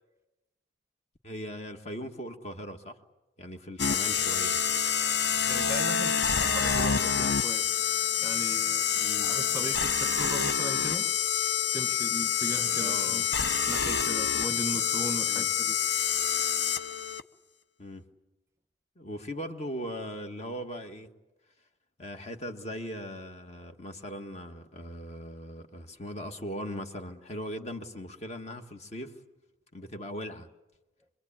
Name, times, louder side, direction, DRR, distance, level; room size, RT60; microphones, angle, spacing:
voice 1, 1.2-3.0 3.4-4.6 8.9-9.4 12.8-13.3 15.3-15.5 17.8-18.1 19.0-21.1 22.0-29.2 29.7-30.5, equal, 35° left, 6 dB, 1.6 m, -39 dB
sound 1, 3.8-17.2, left 7 dB, 65° left, 0.9 m, -27 dB
voice 2, 5.5-7.7 8.2-8.9 9.2-11.1 11.7-15.8, right 1 dB, 15° right, 8 dB, 1.1 m, -38 dB
25.0 x 22.0 x 8.7 m, 1.0 s
head